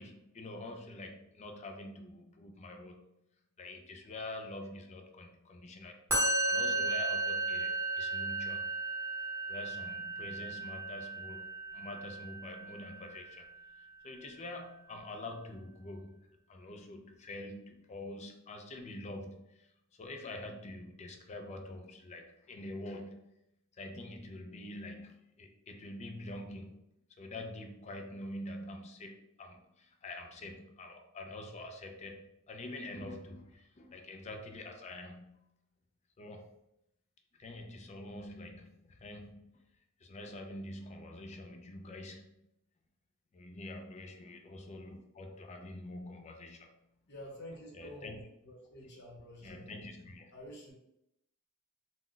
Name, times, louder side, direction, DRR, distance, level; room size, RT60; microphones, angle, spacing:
voice 1, 0.0-3.1 3.6-6.0 6.5-8.7 9.5-16.2 16.5-23.3 23.8-26.8 27.2-35.4 36.2-36.6 37.4-39.6 40.0-42.5 43.3-46.7 47.7-48.2 49.4-50.3, left 1 dB, 30° left, 4 dB, 0.4 m, -46 dB
Musical instrument, 6.1-13.4, right 2 dB, 10° right, 0.9 m, -35 dB
voice 2, 47.1-48.1 48.4-49.7 50.3-50.7, left 1 dB, 55° left, -2 dB, 0.9 m, -49 dB
2.3 x 2.1 x 3.7 m, 0.83 s
head